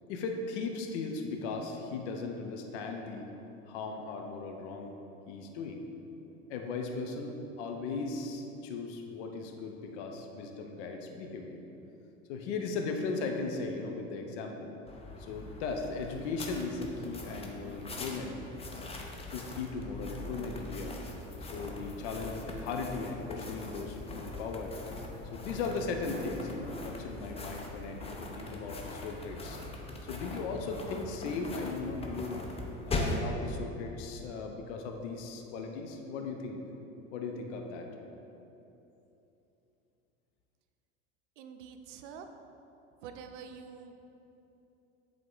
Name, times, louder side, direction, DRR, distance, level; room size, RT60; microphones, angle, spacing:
voice 1, 0.1-3.3 3.6-4.9 5.3-5.8 6.5-11.6 12.3-14.7 15.2-18.4 19.3-20.9 21.4-24.8 25.3-29.6 30.0-32.4 32.9-36.6 37.1-37.9, left 4 dB, 65° left, 3 dB, 0.8 m, -37 dB
sound 1, 14.9-33.3, left 2 dB, 15° left, 0.7 m, -41 dB
voice 2, 41.4-42.3 43.0-44.0, right 6 dB, 65° right, 6 dB, 0.6 m, -46 dB
7.7 x 3.8 x 3.8 m, 3.0 s
hypercardioid pair, 80°, 38 cm